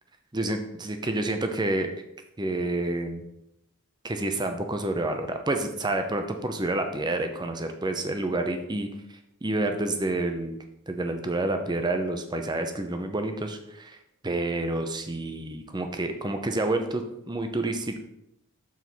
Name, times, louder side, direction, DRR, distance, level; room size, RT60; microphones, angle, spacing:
voice 1, 0.3-1.9 2.4-3.3 4.0-8.9 9.4-10.6 10.9-14.0 14.2-18.0, right 2 dB, 20° right, 6 dB, 0.7 m, -29 dB
7.2 x 4.3 x 6.1 m, 0.86 s
head